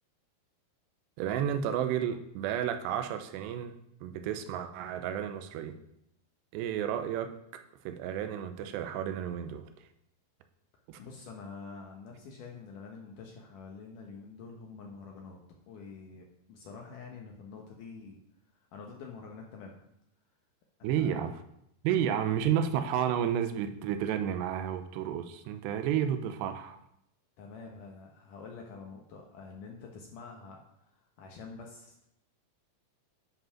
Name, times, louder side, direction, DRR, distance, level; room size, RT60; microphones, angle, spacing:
voice 1, 1.2-3.8 4.0-5.8 6.5-9.9 10.9-11.0 20.8-21.4 21.8-26.8, right 9 dB, 85° right, 8 dB, 2.9 m, -32 dB
voice 2, 11.0-15.4 15.7-18.2 18.7-19.8 20.8-21.2 21.9-22.3 27.4-32.0, left 4 dB, 70° left, 1 dB, 2.1 m, -47 dB
10.0 x 5.3 x 5.7 m, 0.78 s
omnidirectional pair, 4.8 m